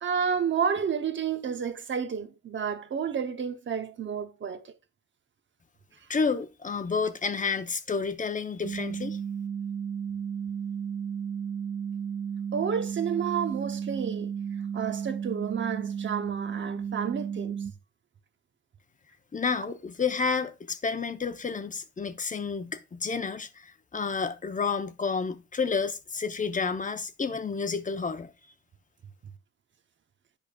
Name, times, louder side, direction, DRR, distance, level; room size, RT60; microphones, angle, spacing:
voice 1, 0.0-4.7 12.5-14.3 14.7-17.6, right 7 dB, 40° right, 0.8 m, -30 dB
voice 2, 6.1-9.2 19.3-28.3, left 5 dB, 25° left, 0.8 m, -30 dB
sound 1, 8.6-17.7, right 7 dB, 25° right, 0.4 m, -33 dB
10.5 x 5.1 x 2.4 m
cardioid pair, 90°, 30 cm